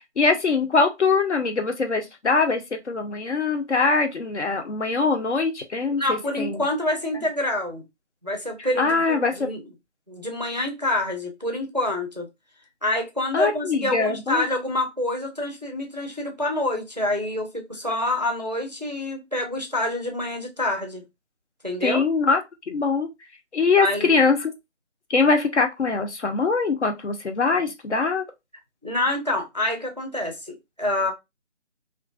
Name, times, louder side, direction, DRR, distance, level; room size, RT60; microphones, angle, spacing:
voice 1, 0.0-6.6 8.8-9.5 13.3-14.5 21.8-22.4 22.7-23.1 23.5-24.5 25.1-28.2, left 4 dB, 70° left, 0.7 m, -22 dB
voice 2, 6.0-7.9 8.2-9.6 10.1-12.3 12.8-21.0 21.6-22.0 23.8-24.2 28.8-31.1, left 1 dB, 40° right, 0.4 m, -27 dB
2.4 x 2.2 x 2.3 m
figure-of-eight pair, 160°, 36 cm